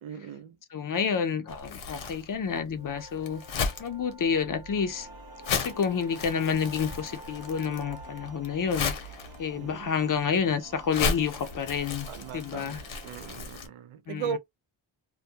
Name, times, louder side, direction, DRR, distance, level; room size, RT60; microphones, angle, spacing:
voice 1, 0.0-0.6 9.5-10.1 12.1-14.4, right 7 dB, 85° right, 0.6 m, -38 dB
voice 2, 0.7-3.4 3.8-5.1 5.5-8.9 9.4-12.1 12.3-12.8 14.1-14.4, left 6 dB, 45° left, 0.5 m, -29 dB
Crumpling crinkling, 1.5-13.7, left 4 dB, 80° left, 0.9 m, -36 dB
sound 1, 2.7-8.3, equal, 10° right, 0.6 m, -49 dB
sound 2, 4.9-13.4, right 5 dB, 50° right, 0.7 m, -51 dB
2.3 x 2.2 x 2.7 m
wide cardioid pair, 115°, 47 cm